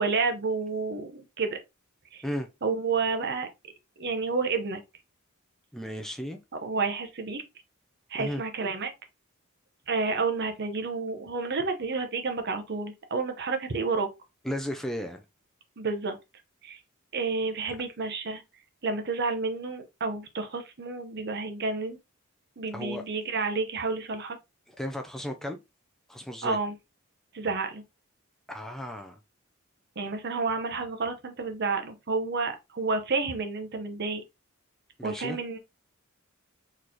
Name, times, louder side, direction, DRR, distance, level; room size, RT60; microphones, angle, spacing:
voice 1, 0.0-1.6 2.1-2.2 2.6-3.5 4.0-4.8 6.6-7.4 8.1-8.9 9.9-14.1 15.8-16.2 16.6-16.8 17.1-18.4 18.8-22.0 22.6-24.4 26.4-26.7 27.3-27.8 30.0-34.2 35.0-35.6, right 4 dB, 55° right, 0.8 m, -30 dB
voice 2, 5.7-6.4 8.1-8.4 14.4-15.2 22.7-23.0 24.7-25.6 26.1-26.6 28.5-29.2 35.0-35.4, equal, ahead, 0.4 m, -34 dB
4.1 x 3.2 x 2.8 m
head